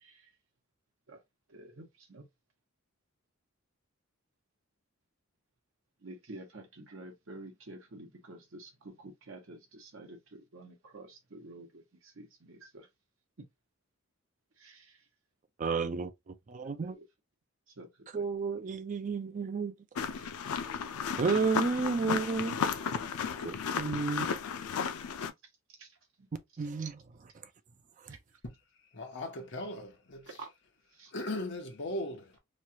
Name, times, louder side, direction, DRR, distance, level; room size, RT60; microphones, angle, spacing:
voice 1, 1.5-2.2 6.0-12.9 14.6-15.0 16.8-17.0 17.8-17.9 18.1-18.2 25.8-25.9 26.6-26.7 30.4-30.5 30.9-31.1, right 2 dB, 60° right, 1.0 m, -49 dB
voice 2, 15.6-16.1 16.5-17.0 18.1-19.7 21.2-22.6 23.5-24.3 26.6-27.0 28.1-28.2, right 4 dB, 35° right, 0.4 m, -31 dB
sound 1, 19.9-25.3, left 6 dB, 90° left, 0.4 m, -34 dB
voice 3, 28.9-30.5 31.1-32.4, left 1 dB, 55° left, 0.9 m, -38 dB
3.1 x 2.3 x 2.7 m
head